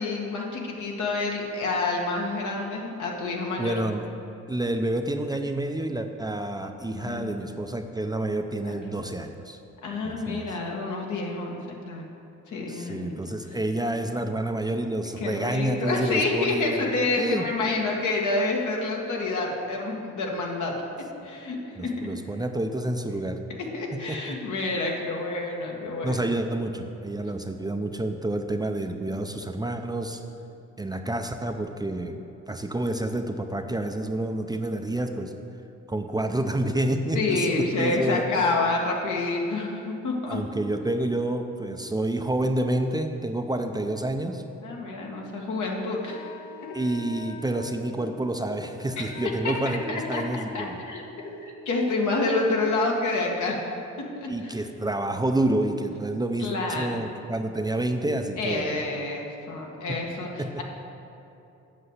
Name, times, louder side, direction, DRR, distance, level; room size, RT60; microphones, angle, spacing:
voice 1, 0.0-3.8 6.9-7.4 9.8-12.1 12.5-13.2 15.2-20.8 21.2-22.1 23.7-26.2 37.1-40.4 44.6-46.3 49.0-49.1 49.4-53.6 54.0-54.6 56.4-57.1 58.4-60.6, left 3 dB, 75° left, -1 dB, 1.8 m, -28 dB
voice 2, 3.6-4.1 4.5-9.6 10.0-10.5 12.7-16.8 17.2-17.4 21.8-23.4 23.9-24.4 26.0-30.2 30.8-32.2 32.5-35.3 35.9-38.3 40.3-44.4 46.7-50.8 54.3-58.7 60.4-60.6, right 1 dB, 15° right, 5 dB, 0.6 m, -29 dB
Wind instrument woodwind instrument, 46.0-51.6, left 4 dB, 30° left, 1.4 m, -44 dB
7.9 x 6.6 x 8.1 m, 2.8 s
cardioid pair, 90°, 30 cm